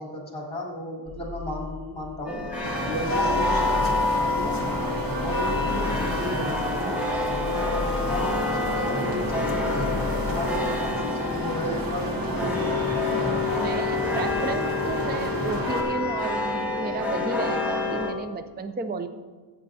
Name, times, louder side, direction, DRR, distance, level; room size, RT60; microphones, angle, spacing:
voice 1, 0.0-2.4 2.8-4.7 5.2-7.0 7.4-9.9 10.3-13.3, equal, 15° left, -4 dB, 3.5 m, -34 dB
sound 1, 1.1-10.9, left 5 dB, 30° left, 2.3 m, -37 dB
sound 2, 2.3-18.1, left 3 dB, 5° right, 1.4 m, -28 dB
sound 3, 2.6-15.8, right 1 dB, 50° right, 1.4 m, -31 dB
voice 2, 13.5-19.1, right 4 dB, 20° right, 9 dB, 0.4 m, -33 dB
16.5 x 8.7 x 2.7 m, 1.5 s
wide cardioid pair, 175°, 45 cm